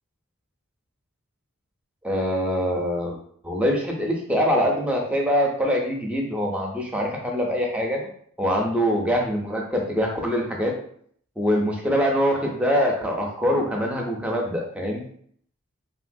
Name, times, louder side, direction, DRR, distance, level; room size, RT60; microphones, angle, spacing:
voice 1, 2.0-3.2 3.4-8.0 8.4-10.7 11.4-15.0, equal, 5° right, 0 dB, 0.4 m, -24 dB
2.9 x 2.7 x 2.6 m, 0.62 s
head